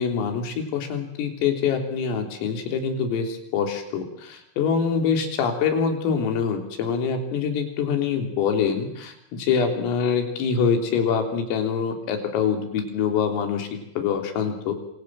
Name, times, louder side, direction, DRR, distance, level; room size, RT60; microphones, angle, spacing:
voice 1, 0.0-14.7, left 6 dB, 85° left, 5 dB, 6.0 m, -25 dB
27.0 x 26.5 x 7.5 m, 0.82 s
omnidirectional pair, 5.8 m